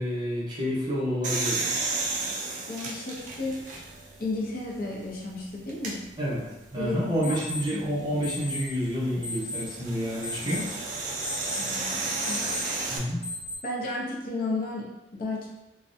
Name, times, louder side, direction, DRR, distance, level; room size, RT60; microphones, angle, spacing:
voice 1, 0.0-1.7 6.2-10.7 12.9-13.3, equal, 25° right, -7 dB, 0.7 m, -29 dB
sound 1, 1.2-4.2 4.7-4.8 5.7-6.0 8.1-13.0, right 3 dB, 45° right, 0.4 m, -32 dB
voice 2, 2.7-3.6 4.2-6.0 6.8-7.0 7.2-7.4 7.7-7.9 11.6-12.5 13.6-15.5, left 2 dB, 55° left, -3 dB, 0.5 m, -33 dB
sound 2, 3.1-13.6, left 2 dB, 25° left, 0.9 m, -40 dB
2.4 x 2.1 x 2.5 m, 0.97 s
head